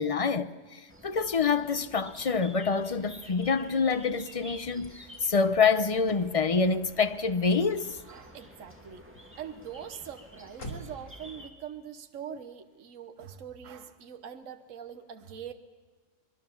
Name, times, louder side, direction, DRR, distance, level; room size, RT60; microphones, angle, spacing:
voice 1, 0.0-8.0, left 5 dB, 40° left, 0.5 m, -26 dB
sound 1, 0.9-11.5, equal, 10° right, 2.2 m, -51 dB
Car / Slam, 2.8-11.2, equal, 65° left, 3.1 m, -51 dB
voice 2, 8.1-9.0 9.4-15.5, right 8 dB, 65° right, 1.5 m, -43 dB
25.0 x 21.5 x 7.1 m
omnidirectional pair, 1.5 m